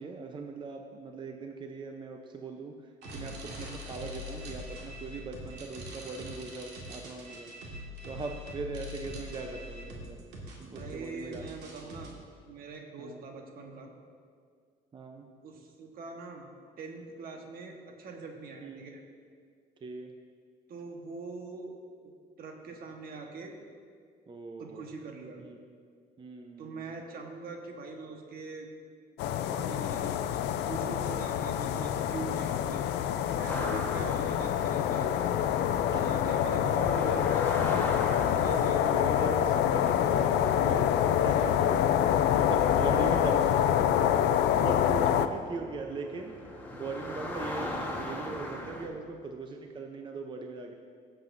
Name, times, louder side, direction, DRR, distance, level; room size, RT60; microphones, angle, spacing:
voice 1, 0.0-7.5 8.0-10.2 10.6-11.6 13.0-13.2 14.9-15.3 18.6-18.8 19.8-20.1 24.3-24.9 25.5-25.6 26.2-26.9 33.5-33.8 35.9-36.1 36.9-37.3 38.3-40.9 41.2-41.6 42.4-43.9 44.3-46.4 46.7-50.7, right 3 dB, 30° right, 3 dB, 0.6 m, -40 dB
sound 1, 3.0-12.1, left 1 dB, 90° right, 1.9 m, -43 dB
voice 2, 10.7-12.1 12.4-13.9 15.4-16.4 16.8-19.0 20.7-21.8 22.4-23.6 24.6-25.4 26.6-28.7 29.5-32.8 33.4-35.1 36.0-37.8 38.1-38.8 41.3-41.5, right 4 dB, 60° right, 2 dB, 1.3 m, -43 dB
sound 2, 29.2-45.3, left 10 dB, 85° left, 0.5 m, -26 dB
sound 3, 33.5-48.9, left 1 dB, 10° left, 1.3 m, -41 dB
16.5 x 7.6 x 2.6 m, 2.1 s
cardioid pair, 110°, 17 cm